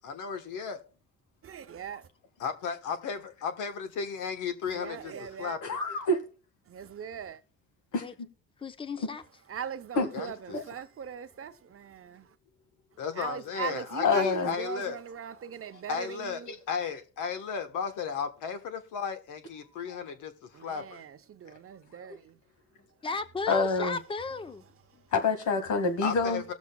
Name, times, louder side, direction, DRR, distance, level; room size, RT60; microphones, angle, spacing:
voice 1, 0.0-0.8 2.4-5.8 9.9-10.6 13.0-15.0 15.9-16.4 16.7-20.3 20.6-21.0 26.0-26.4, left 6 dB, 90° left, 1.3 m, -34 dB
voice 2, 1.4-2.1 4.7-5.6 6.7-7.4 9.5-12.3 13.1-16.5 20.5-22.4, right 8 dB, 50° right, 0.8 m, -40 dB
voice 3, 5.6-6.2 7.9-8.0 9.0-9.1 10.0-10.1 10.5-10.6 14.0-14.6 16.5-16.6 23.5-24.0 25.1-26.4, left 3 dB, 75° left, 1.9 m, -26 dB
voice 4, 8.6-9.2 23.0-24.6 24.9-25.0, left 4 dB, 15° left, 0.7 m, -35 dB
19.0 x 7.2 x 2.3 m
cardioid pair, 90°, 30 cm